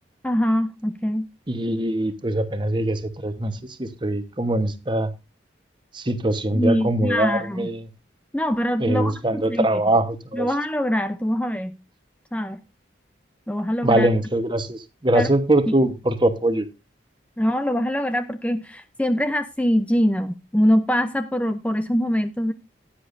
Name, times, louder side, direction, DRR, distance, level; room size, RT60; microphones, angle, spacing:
voice 1, 0.2-1.3 6.5-7.7 8.3-9.7 10.3-11.7 12.3-12.6 13.5-14.1 15.1-15.3 17.4-22.5, equal, 5° left, 0.6 m, -23 dB
voice 2, 1.5-3.5 3.8-5.1 5.9-7.8 8.8-10.5 13.8-16.7, right 1 dB, 25° right, 1.1 m, -22 dB
15.5 x 10.0 x 2.6 m
head